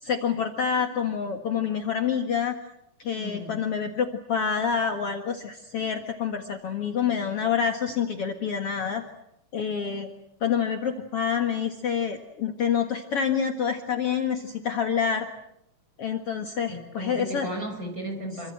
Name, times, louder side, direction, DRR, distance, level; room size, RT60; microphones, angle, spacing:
voice 1, 0.0-2.6 3.0-9.0 9.5-10.1 10.4-15.3 16.0-17.5, left 7 dB, 50° left, 5 dB, 2.4 m, -27 dB
voice 2, 3.2-3.6 16.7-18.5, right 1 dB, 25° right, 5 dB, 5.8 m, -35 dB
28.0 x 25.0 x 7.8 m, 0.78 s
omnidirectional pair, 3.7 m